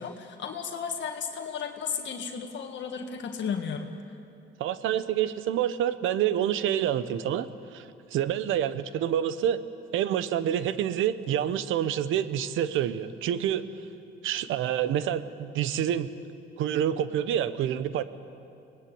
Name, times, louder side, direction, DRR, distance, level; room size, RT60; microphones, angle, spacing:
voice 1, 0.0-3.9, left 6 dB, 65° left, 4 dB, 1.7 m, -34 dB
voice 2, 4.6-7.8 8.1-9.6 9.9-13.6 14.2-16.1 16.6-18.0, right 10 dB, 90° right, 13 dB, 1.0 m, -27 dB
24.0 x 19.5 x 8.6 m, 2.6 s
cardioid pair, 90°, 20 cm